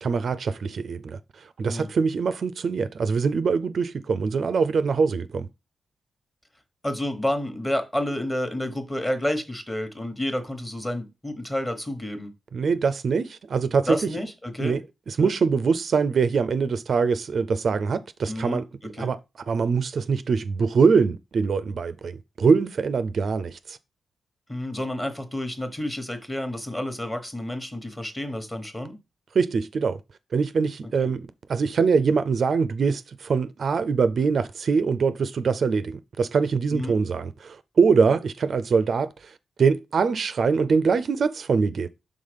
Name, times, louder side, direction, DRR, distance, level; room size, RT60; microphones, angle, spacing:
voice 1, 0.0-5.5 12.5-14.0 14.6-18.6 19.0-19.2 19.5-23.8 29.3-30.0 30.3-41.9, right 5 dB, 55° right, 0.4 m, -23 dB
voice 2, 6.8-12.3 13.9-14.8 15.2-15.3 18.2-19.1 24.5-29.0 36.7-37.0, left 1 dB, 15° left, 1.1 m, -30 dB
5.7 x 3.6 x 5.1 m
wide cardioid pair, 135°, 0 cm